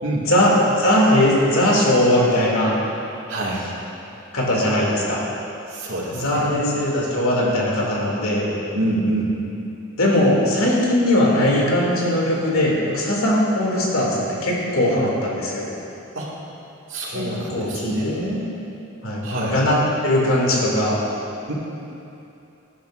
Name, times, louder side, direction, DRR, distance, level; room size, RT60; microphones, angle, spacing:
voice 1, 0.3-2.8 4.3-5.2 6.1-8.5 10.0-15.7 17.1-17.2 17.5-18.2 19.0-19.8 20.0-21.0, left 1 dB, 90° left, -4 dB, 2.8 m, -19 dB
voice 2, 3.3-3.7 5.7-6.7 8.7-9.3 16.2-16.3 16.9-18.6 19.2-19.6 21.5-21.6, right 1 dB, 65° right, -5 dB, 2.3 m, -26 dB
18.0 x 10.0 x 2.6 m, 2.8 s
head